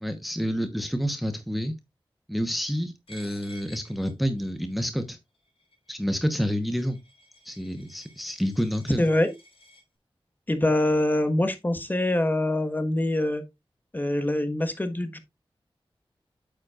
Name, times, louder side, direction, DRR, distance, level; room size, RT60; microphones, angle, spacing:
voice 1, 0.0-1.7 2.3-5.2 5.9-7.0 7.4-9.1, equal, ahead, 1.0 m, -28 dB
Coin (dropping), 3.1-9.8, equal, 80° left, 4.9 m, -54 dB
voice 2, 9.0-9.3 10.5-13.4 13.9-15.2, left 1 dB, 20° left, 1.3 m, -24 dB
9.1 x 7.4 x 2.4 m
wide cardioid pair, 100°, 9 cm